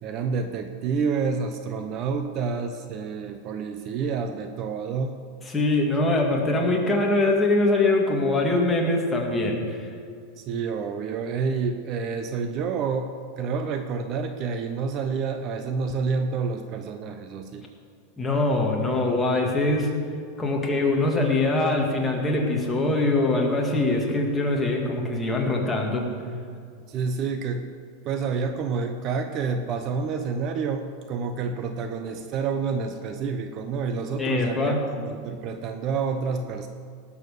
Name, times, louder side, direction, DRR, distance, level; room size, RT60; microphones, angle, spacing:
voice 1, 0.0-5.1 10.4-17.7 26.9-27.7 28.0-36.7, right 5 dB, 40° right, 7 dB, 0.8 m, -28 dB
voice 2, 5.5-9.9 18.2-19.9 20.4-26.1 34.2-34.8, left 2 dB, 10° left, -1 dB, 2.0 m, -23 dB
18.0 x 7.2 x 6.8 m, 2.3 s
supercardioid pair, 150°, 0 cm